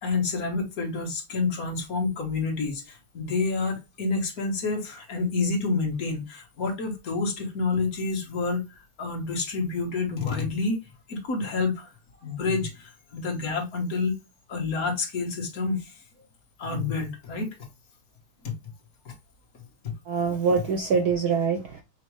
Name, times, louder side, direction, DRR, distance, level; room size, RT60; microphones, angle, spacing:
voice 1, 0.0-10.8 11.1-11.9 12.2-14.2 14.5-16.0 16.6-17.5 18.4-18.5 19.0-19.1, left 4 dB, 45° left, 1.6 m, -28 dB
voice 2, 20.1-21.8, right 5 dB, 75° right, 0.9 m, -24 dB
6.2 x 2.8 x 3.0 m
omnidirectional pair, 2.4 m